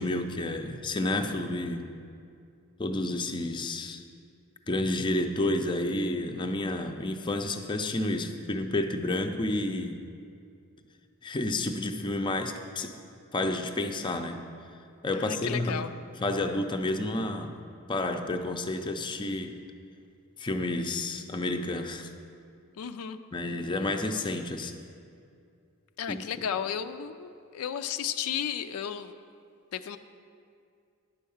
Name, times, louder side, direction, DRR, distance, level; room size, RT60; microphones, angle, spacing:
voice 1, 0.0-1.9 2.8-4.0 4.7-10.0 11.2-13.0 13.3-14.4 15.0-15.9 16.2-17.5 17.9-19.6 20.4-22.1 23.3-24.8 26.1-26.2, left 2 dB, 20° left, 5 dB, 0.5 m, -30 dB
voice 2, 15.1-15.9 22.8-23.2 26.0-29.1 29.7-30.0, left 8 dB, 80° left, 10 dB, 0.4 m, -33 dB
10.5 x 4.6 x 7.0 m, 2.4 s
head